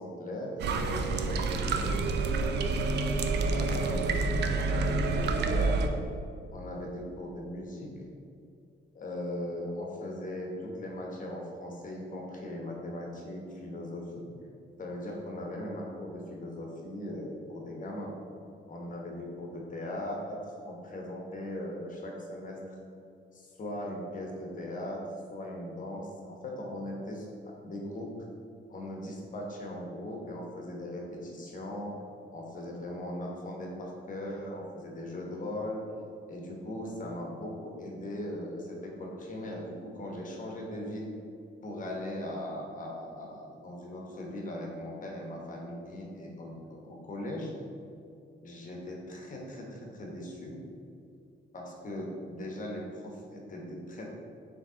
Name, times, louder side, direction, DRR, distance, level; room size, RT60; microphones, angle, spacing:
voice 1, 0.0-2.0 3.5-5.8 6.5-7.9 8.9-14.2 14.8-18.1 18.7-22.8 23.3-25.0 25.3-27.3 27.6-28.1 28.7-32.0 32.3-35.8 36.3-41.1 41.6-47.5 48.4-50.6 51.5-54.0, left 1 dB, 40° left, -1 dB, 1.0 m, -39 dB
sound 1, 0.6-5.9, right 3 dB, 60° right, 0.4 m, -28 dB
4.1 x 3.2 x 3.7 m, 2.5 s
cardioid pair, 90°, 20 cm